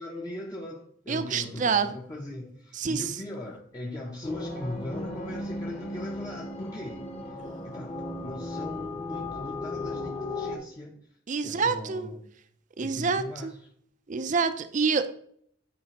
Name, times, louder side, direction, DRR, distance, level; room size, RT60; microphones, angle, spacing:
voice 1, 0.0-11.2 11.4-12.2 12.8-13.7, left 1 dB, 20° left, 0.7 m, -39 dB
voice 2, 1.1-1.9 2.7-3.2 11.3-12.1 12.8-13.5 14.1-15.1, right 5 dB, 40° right, 0.5 m, -27 dB
sound 1, 4.2-10.6, left 2 dB, 35° left, 1.1 m, -36 dB
9.7 x 4.7 x 2.9 m
head